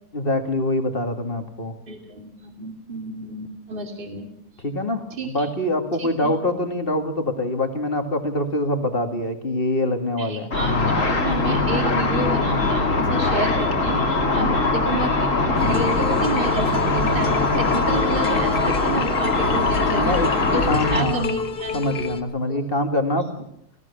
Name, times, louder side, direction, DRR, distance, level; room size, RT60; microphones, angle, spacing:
voice 1, 0.1-1.7 4.6-10.5 14.4-14.6 19.9-20.3 20.6-21.3 21.7-23.5, left 1 dB, 35° left, 6 dB, 2.4 m, -24 dB
voice 2, 1.9-4.3 5.1-5.5 6.0-6.3 10.2-20.2 20.5-22.1 22.5-22.6, right 3 dB, 35° right, 4 dB, 2.6 m, -30 dB
Car / Traffic noise roadway noise / Engine, 10.5-21.0, left 3 dB, 50° left, 2.8 m, -21 dB
sound 1, 15.6-22.2, left 6 dB, 80° left, 1.9 m, -32 dB
20.0 x 16.0 x 8.5 m, 0.75 s
omnidirectional pair, 1.7 m